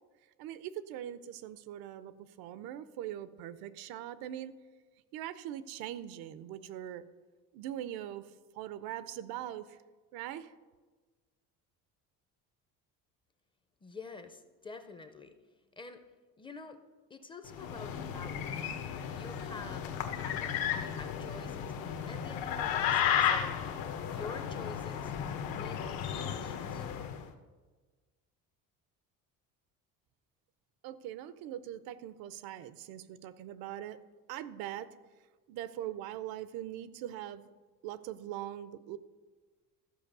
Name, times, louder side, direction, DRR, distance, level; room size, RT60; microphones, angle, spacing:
voice 1, 0.4-4.5 5.1-7.0 7.5-9.8 10.1-10.5 30.8-34.0 34.3-34.9 35.5-37.5 37.8-39.0, right 12 dB, 90° right, 15 dB, 0.7 m, -41 dB
voice 2, 13.8-15.4 15.8-16.0 16.4-16.8 17.1-18.6 19.1-23.7 24.0-25.1 25.4-26.9, left 4 dB, 15° left, 8 dB, 0.4 m, -48 dB
sound 1, 17.5-27.2, left 9 dB, 75° left, 1.0 m, -34 dB
13.0 x 5.4 x 6.7 m, 1.4 s
cardioid pair, 165°, 35 cm